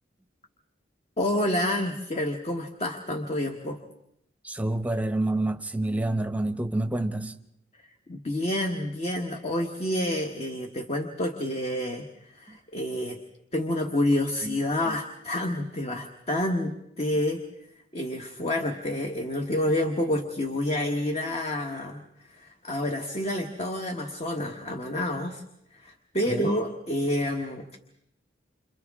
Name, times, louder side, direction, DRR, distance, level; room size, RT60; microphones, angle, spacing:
voice 1, 1.2-3.8 8.1-13.2 13.5-17.4 17.9-25.4 25.7-27.7, left 1 dB, 35° left, 4 dB, 1.3 m, -29 dB
voice 2, 4.4-7.3 14.4-14.6 14.8-14.9 26.3-26.5, right 1 dB, 10° right, 9 dB, 0.9 m, -28 dB
29.0 x 27.0 x 3.6 m, 0.79 s
head